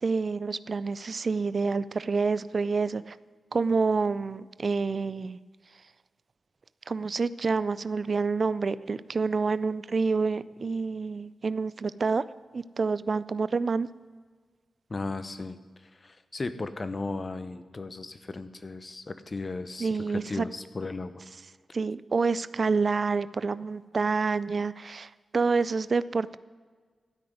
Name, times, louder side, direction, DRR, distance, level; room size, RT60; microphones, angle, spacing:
voice 1, 0.0-3.2 3.5-5.4 6.9-12.2 12.5-13.9 19.8-20.5 21.7-26.4, right 4 dB, 55° right, 17 dB, 0.4 m, -28 dB
voice 2, 14.9-21.1, left 3 dB, 40° left, 12 dB, 0.9 m, -36 dB
12.5 x 6.2 x 9.4 m, 1.5 s
cardioid pair, 45°, 0 cm